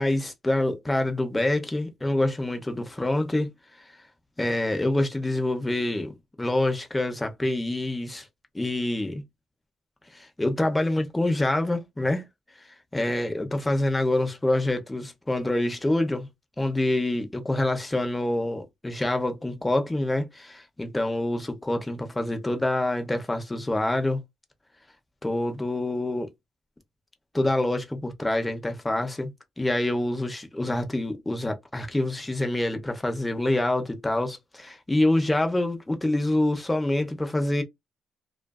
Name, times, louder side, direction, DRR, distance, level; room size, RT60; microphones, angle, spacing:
voice 1, 0.0-3.5 4.4-8.3 8.5-9.2 10.1-12.2 12.9-16.3 16.6-24.2 25.2-26.3 27.3-29.3 29.6-37.6, left 1 dB, 15° left, 0.7 m, -26 dB
2.4 x 2.4 x 2.2 m
cardioid pair, 90°, 0 cm